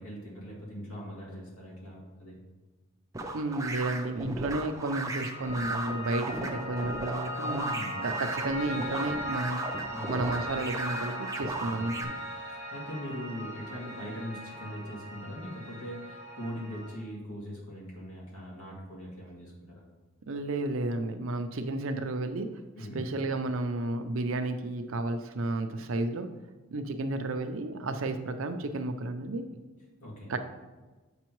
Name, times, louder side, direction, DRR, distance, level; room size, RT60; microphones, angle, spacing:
voice 1, 0.0-2.4 7.4-8.0 9.9-10.2 11.6-19.9 22.8-23.0 30.0-30.3, equal, 85° left, -4 dB, 2.2 m, -41 dB
sound 1, 3.1-12.0, right 2 dB, 15° right, 0.5 m, -37 dB
voice 2, 3.3-7.7 8.0-9.6 10.1-12.1 20.3-26.3 26.7-29.5 30.3-30.4, right 2 dB, 65° right, 8 dB, 0.6 m, -32 dB
Piano, 4.6-17.0, equal, 65° left, 2.0 m, -38 dB
8.2 x 5.5 x 3.0 m, 1.2 s
head